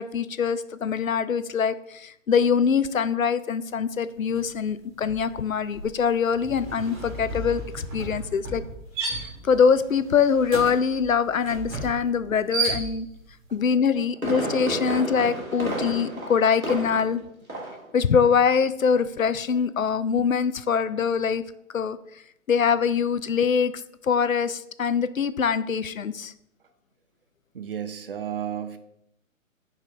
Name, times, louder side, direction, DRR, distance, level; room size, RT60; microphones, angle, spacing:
voice 1, 0.0-8.6 9.4-13.1 13.5-17.2 17.9-21.4 21.7-22.0 22.5-23.7 24.0-26.3, left 6 dB, 75° left, 15 dB, 0.6 m, -23 dB
sound 1, 4.3-4.6 4.9-13.3, right 3 dB, 25° right, 1.8 m, -34 dB
Fireworks, 13.7-17.2 17.5-17.9 18.2-18.3, right 1 dB, 85° right, 2.4 m, -31 dB
voice 2, 27.5-28.8, right 9 dB, 45° right, 9 dB, 0.6 m, -32 dB
9.9 x 4.9 x 2.7 m, 0.76 s
figure-of-eight pair, 135°, 41 cm